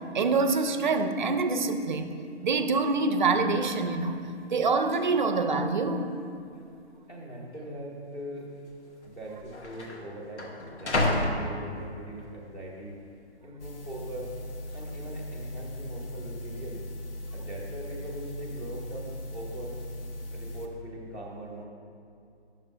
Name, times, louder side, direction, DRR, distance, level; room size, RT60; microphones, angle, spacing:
voice 1, 0.1-2.2 2.4-4.2 4.5-6.1, right 3 dB, 45° right, 7 dB, 0.4 m, -25 dB
sound 1, 3.5-3.6 3.8-4.2 4.9-5.0 5.8-6.3 6.6-6.7 7.5-7.7 8.7-8.8 9.0-12.2 12.7-13.2, left 1 dB, 80° left, 1.1 m, -32 dB
voice 2, 7.1-8.5 9.0-13.0 13.4-14.3 14.7-16.8 17.3-19.9 20.3-21.6, right 1 dB, 10° left, -7 dB, 0.7 m, -41 dB
sound 2, 13.6-20.7, left 1 dB, 55° left, 0.8 m, -39 dB
8.9 x 6.8 x 2.4 m, 2.5 s
figure-of-eight pair, 145°, 34 cm